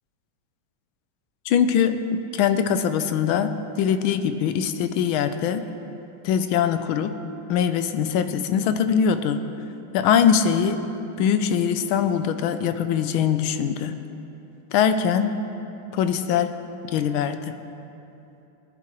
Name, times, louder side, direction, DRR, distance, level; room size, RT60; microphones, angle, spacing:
voice 1, 1.5-3.5 3.8-5.6 6.2-7.2 7.5-9.4 9.9-10.8 11.2-13.9 14.7-15.4 15.9-16.5 16.8-17.5, left 8 dB, 80° left, 9 dB, 1.4 m, -22 dB
20.0 x 10.5 x 3.0 m, 2.9 s
omnidirectional pair, 2.3 m